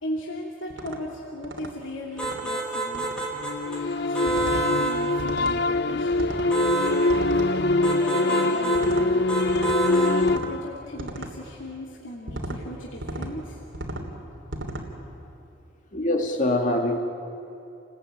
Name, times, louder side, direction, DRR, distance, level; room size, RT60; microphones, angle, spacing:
voice 1, 0.0-3.1 3.7-6.4 6.8-9.2 9.8-13.6, left 1 dB, 85° left, -3 dB, 2.9 m, -37 dB
sound 1, 0.7-1.0 1.4-1.7 2.2-2.5 2.9-3.2 4.3-4.7 5.2-5.6 6.1-6.5 7.1-7.5 8.7-9.1 9.5-9.8 10.2-10.5 11.0-11.3 12.3-12.6 13.0-13.3 13.7-14.1 14.5-14.9, right 1 dB, 85° right, 3.1 m, -35 dB
sound 2, 2.2-3.8 4.1-5.0 6.5-7.0 7.8-8.8 9.3-10.2, right 3 dB, 5° left, 4.9 m, -28 dB
sound 3, 3.3-10.4, left 2 dB, 60° left, 0.6 m, -23 dB
voice 2, 15.9-17.0, left 1 dB, 40° left, 3 dB, 2.4 m, -24 dB
29.0 x 20.0 x 9.1 m, 2.7 s
head